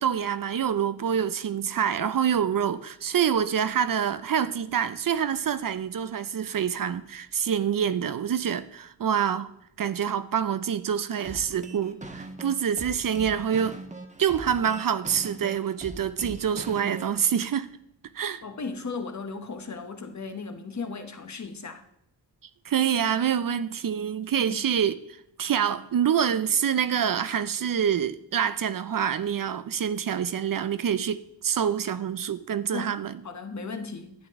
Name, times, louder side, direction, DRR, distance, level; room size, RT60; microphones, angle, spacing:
voice 1, 0.0-9.5 9.8-13.8 14.2-17.7 18.1-18.4 22.6-33.2, right 8 dB, 50° right, 0.5 m, -26 dB
sound 1, 11.2-17.3, right 2 dB, 15° right, 1.2 m, -41 dB
voice 2, 18.4-21.8 24.5-24.6 32.7-33.0 33.2-34.1, left 4 dB, 40° left, 1.0 m, -36 dB
11.5 x 8.9 x 3.6 m
wide cardioid pair, 105°, 42 cm